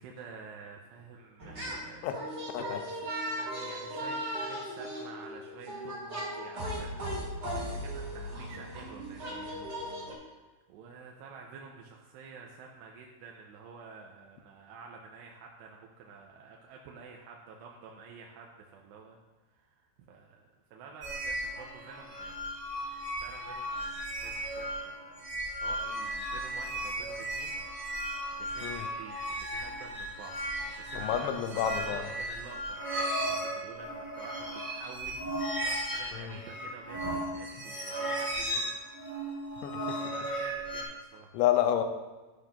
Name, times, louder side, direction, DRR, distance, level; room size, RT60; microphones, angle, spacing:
voice 1, 0.0-2.0 2.6-9.9 10.7-19.2 19.5-22.6 22.9-32.9 33.2-38.7 40.0-41.4, right 5 dB, 80° right, 0 dB, 2.8 m, -50 dB
sound 1, 1.4-1.8 2.1-10.1, equal, 45° right, 0.8 m, -37 dB
sound 2, 21.0-40.8, right 1 dB, 10° left, 0.6 m, -36 dB
voice 2, 31.0-32.0 36.1-36.4 39.6-40.0 41.3-41.8, left 11 dB, 80° left, 6 dB, 3.0 m, -29 dB
12.0 x 11.5 x 2.6 m, 1.2 s
omnidirectional pair, 5.3 m